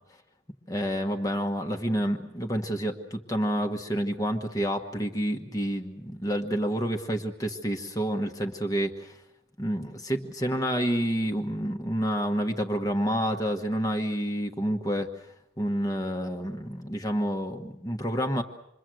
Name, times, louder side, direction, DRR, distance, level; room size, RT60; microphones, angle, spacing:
voice 1, 0.7-9.1 9.6-15.1 15.6-18.4, equal, 20° left, 3 dB, 1.3 m, -29 dB
27.5 x 22.5 x 7.7 m, 0.83 s
head